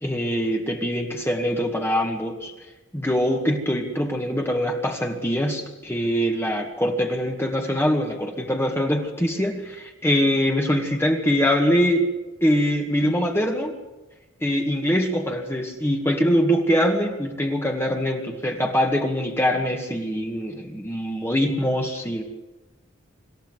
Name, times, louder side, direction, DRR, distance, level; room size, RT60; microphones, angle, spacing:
voice 1, 0.0-2.5 2.9-12.1 12.4-13.7 14.4-22.2, equal, 15° left, 1 dB, 2.0 m, -23 dB
26.5 x 14.5 x 8.3 m, 1.1 s
head